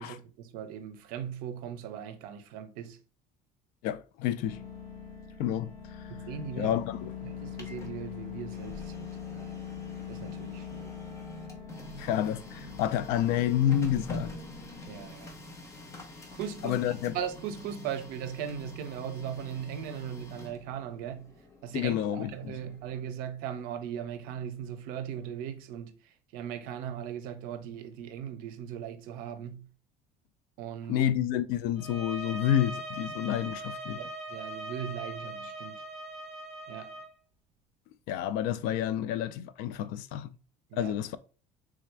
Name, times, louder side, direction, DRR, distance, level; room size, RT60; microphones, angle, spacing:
voice 1, 0.0-3.0 6.1-6.8 7.2-9.6 10.1-10.9 14.9-15.3 16.3-16.8 17.1-21.3 21.6-26.0 26.3-29.7 30.6-31.0 34.0-35.8 36.7-36.9 40.7-40.9, right 9 dB, 70° right, 0.6 m, -39 dB
voice 2, 3.8-4.6 5.4-6.1 6.6-7.1 12.0-14.4 16.6-17.2 21.7-22.6 30.9-34.0 38.1-40.3 40.7-41.2, left 11 dB, 70° left, 0.4 m, -29 dB
sound 1, 4.4-15.1, left 7 dB, 55° left, 1.2 m, -43 dB
Printer, 7.3-23.1, left 1 dB, 20° left, 0.7 m, -46 dB
sound 2, 31.8-37.1, right 1 dB, 40° right, 1.3 m, -40 dB
3.5 x 3.3 x 3.3 m
cardioid pair, 165°, 15 cm